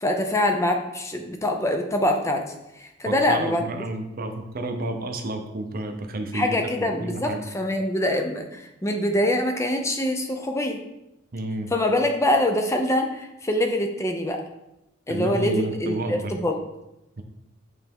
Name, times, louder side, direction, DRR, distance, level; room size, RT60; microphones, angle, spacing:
voice 1, 0.0-2.4 2.8-3.6 6.3-10.8 11.7-14.4 15.1-16.5, left 1 dB, 15° left, 4 dB, 0.5 m, -24 dB
voice 2, 3.0-6.6 7.0-7.4 11.3-11.7 15.1-16.4 17.2-17.3, right 2 dB, 45° right, 6 dB, 0.6 m, -30 dB
8.2 x 3.4 x 3.6 m, 0.90 s
head